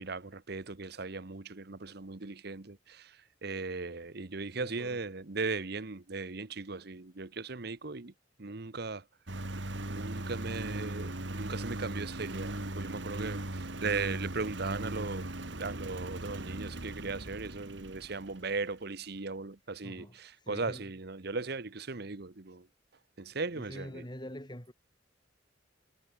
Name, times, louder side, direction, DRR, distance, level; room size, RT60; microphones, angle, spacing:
voice 1, 0.0-3.2 3.4-8.1 8.4-9.0 9.9-15.3 15.6-22.7 23.2-24.0, right 3 dB, 60° right, 1.1 m, -38 dB
voice 2, 4.5-5.0 19.8-20.9 23.5-24.7, equal, 25° left, 6.3 m, -45 dB
Engine, 9.3-18.7, right 1 dB, 75° right, 2.8 m, -39 dB
head